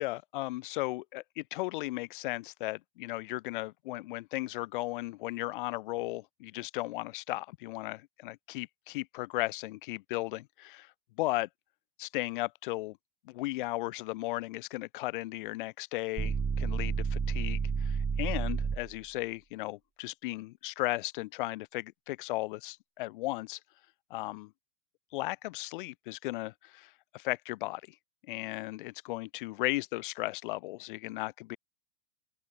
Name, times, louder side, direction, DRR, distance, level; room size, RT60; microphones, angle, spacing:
voice 1, 0.0-8.0 8.2-10.9 11.2-11.5 12.0-13.0 13.3-23.6 24.1-24.5 25.1-27.8 28.3-31.6, left 19 dB, 45° left, 5.6 m, -36 dB
sound 1, 16.2-19.0, right 6 dB, 5° right, 0.5 m, -30 dB
open air
supercardioid pair, 175°, 35 cm